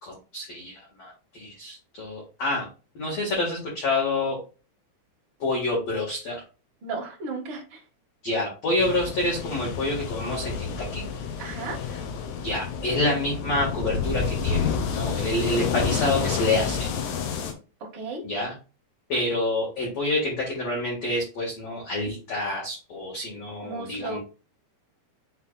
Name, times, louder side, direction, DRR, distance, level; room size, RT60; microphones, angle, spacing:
voice 1, 0.0-2.7 2.9-4.4 5.4-6.4 8.2-11.0 11.9-12.0 12.4-16.9 18.2-18.5 19.1-24.2, left 2 dB, 55° left, -3 dB, 2.0 m, -28 dB
voice 2, 6.8-7.8 11.4-11.8 17.8-18.2 23.6-24.2, right 3 dB, 85° right, -2 dB, 1.1 m, -34 dB
sound 1, 8.8-17.5, left 6 dB, 90° left, 1.9 m, -29 dB
9.4 x 4.3 x 2.4 m, 0.33 s
omnidirectional pair, 5.6 m